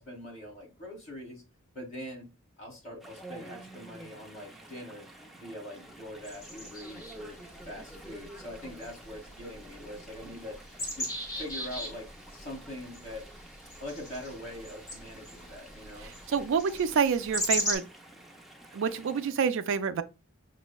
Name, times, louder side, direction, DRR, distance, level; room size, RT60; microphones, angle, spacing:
voice 1, 0.0-1.4 1.7-2.3 2.6-5.1 5.3-10.6 11.0-12.1 12.3-13.2 13.8-16.2, left 1 dB, 35° left, 1.5 m, -43 dB
Chatter / Stream, 3.0-19.3, right 1 dB, ahead, 0.4 m, -50 dB
sound 1, 6.2-17.8, left 1 dB, 15° left, 1.2 m, -39 dB
voice 2, 16.0-17.8 18.7-20.0, right 6 dB, 65° right, 0.4 m, -28 dB
6.0 x 2.1 x 2.2 m
head